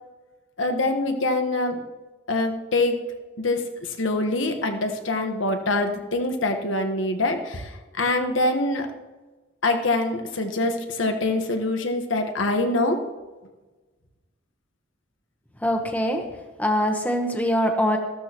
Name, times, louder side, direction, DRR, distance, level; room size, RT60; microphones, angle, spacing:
voice 1, 0.6-1.8 2.3-3.0 3.4-8.9 9.6-13.0, left 2 dB, 80° left, 5 dB, 1.3 m, -24 dB
voice 2, 15.6-16.2 16.6-18.0, equal, 10° left, 3 dB, 1.0 m, -23 dB
14.5 x 12.5 x 3.0 m, 1.2 s
head